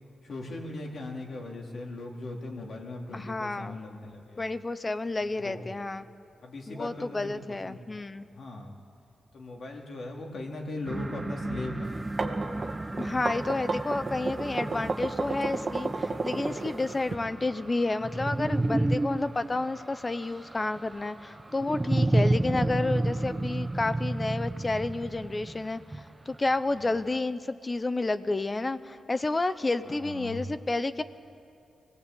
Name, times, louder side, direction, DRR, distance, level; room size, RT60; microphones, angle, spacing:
voice 1, 0.2-4.5 5.4-5.7 6.4-7.8 8.3-8.8 9.3-12.0 26.7-27.0 29.8-30.5, left 2 dB, 60° left, 0 dB, 3.7 m, -39 dB
voice 2, 3.1-3.8 4.4-6.1 6.7-8.3 13.0-31.0, left 2 dB, 25° left, 13 dB, 0.9 m, -30 dB
sound 1, 10.9-26.4, right 2 dB, 20° right, 0.7 m, -31 dB
sound 2, 11.9-17.1, right 3 dB, 40° right, 2.0 m, -32 dB
25.5 x 18.0 x 8.5 m, 2.6 s
cardioid pair, 95°, 0 cm